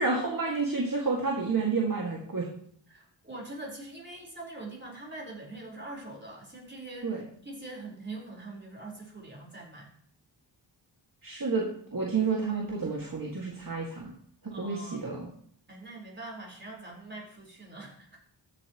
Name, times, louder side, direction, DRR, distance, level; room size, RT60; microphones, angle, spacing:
voice 1, 0.0-2.5 7.0-7.2 11.2-14.1 14.4-15.3, right 4 dB, 45° right, -2 dB, 2.1 m, -30 dB
voice 2, 2.9-7.1 7.4-9.9 14.5-15.0 15.7-18.2, right 2 dB, 25° right, -1 dB, 4.3 m, -43 dB
14.5 x 8.5 x 3.0 m, 0.62 s
wide cardioid pair, 95°, 45 cm